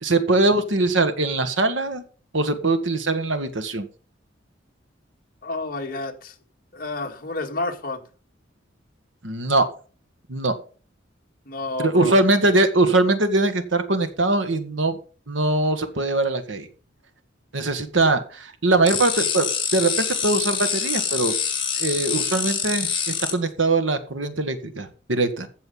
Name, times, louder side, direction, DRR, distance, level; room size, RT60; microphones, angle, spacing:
voice 1, 0.0-2.0 2.3-3.9 9.2-9.7 10.3-10.5 11.8-15.0 15.3-16.7 17.5-19.5 19.7-21.3 21.8-25.5, right 2 dB, 85° right, 1.7 m, -22 dB
voice 2, 5.4-6.4 6.7-8.0 11.5-12.2, left 2 dB, 50° left, 2.0 m, -30 dB
sound 1, 18.9-23.3, left 7 dB, 25° left, 4.4 m, -25 dB
15.0 x 6.5 x 5.5 m
head